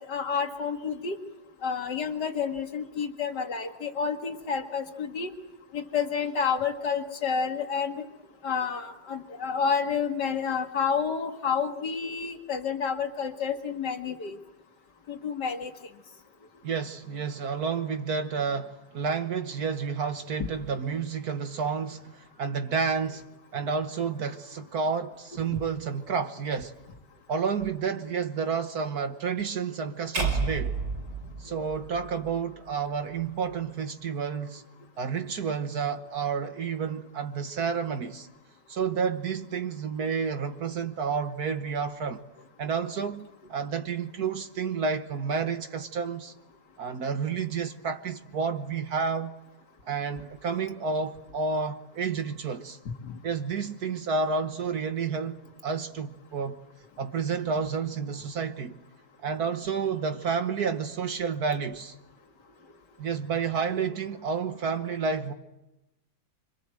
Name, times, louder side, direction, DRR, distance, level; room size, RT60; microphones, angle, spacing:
voice 1, 0.1-1.2 1.6-5.3 5.7-8.0 8.4-14.4 15.1-15.7 20.4-20.5 31.5-31.7 53.0-53.2, left 6 dB, 85° left, 2.6 m, -29 dB
voice 2, 16.6-23.3 23.5-26.7 27.3-30.8 31.4-34.6 35.0-38.3 38.7-42.2 42.6-46.3 46.8-49.3 49.9-52.8 53.2-56.6 57.0-58.8 59.2-61.9 63.0-65.3, right 5 dB, 65° right, 1.7 m, -30 dB
sound 1, 30.1-32.4, right 4 dB, 85° right, 6.1 m, -30 dB
26.5 x 26.5 x 7.8 m
omnidirectional pair, 1.8 m